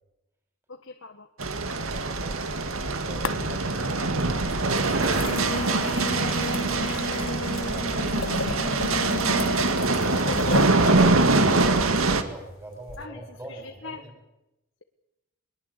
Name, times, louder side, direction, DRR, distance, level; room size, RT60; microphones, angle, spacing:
voice 1, 0.7-1.3 13.0-13.2 13.5-14.0, left 4 dB, 65° left, 5 dB, 1.5 m, -41 dB
sound 1, 1.4-12.2, right 3 dB, 80° right, 2.1 m, -24 dB
voice 2, 1.6-4.5 8.4-9.5 10.5-14.1, right 1 dB, 10° right, 1 dB, 5.9 m, -43 dB
sound 2, 1.9-2.8 3.2-3.9 4.5-11.0 12.9-13.1, left 4 dB, 85° left, 1.1 m, -35 dB
Singing, 4.8-9.7, left 1 dB, 45° left, 1.9 m, -35 dB
22.5 x 22.0 x 8.4 m, 0.91 s
head